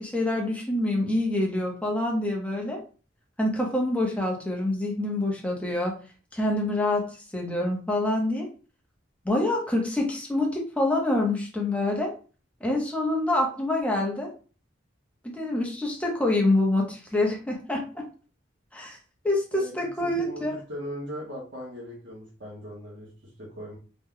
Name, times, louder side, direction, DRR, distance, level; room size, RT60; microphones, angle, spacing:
voice 1, 0.0-2.8 3.4-5.9 6.3-7.1 7.3-8.5 9.2-12.1 12.6-14.3 15.2-18.0 18.7-19.0 19.2-20.5, left 1 dB, 5° left, 0 dB, 0.8 m, -26 dB
voice 2, 20.1-23.8, equal, 75° right, -4 dB, 1.1 m, -39 dB
3.1 x 2.3 x 3.7 m, 0.36 s
head